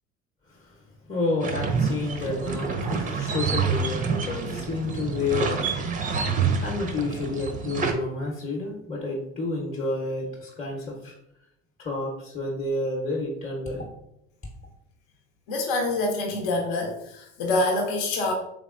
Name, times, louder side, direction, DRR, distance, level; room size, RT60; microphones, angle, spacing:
voice 1, 1.1-5.9 6.6-11.1 11.8-13.8, left 2 dB, 20° left, -2 dB, 0.8 m, -30 dB
sound 1, 1.4-7.9, right 5 dB, 20° right, 0.5 m, -27 dB
voice 2, 15.5-18.3, left 2 dB, 65° left, 2 dB, 0.8 m, -26 dB
3.4 x 3.4 x 2.4 m, 0.80 s
hypercardioid pair, 65°, 37 cm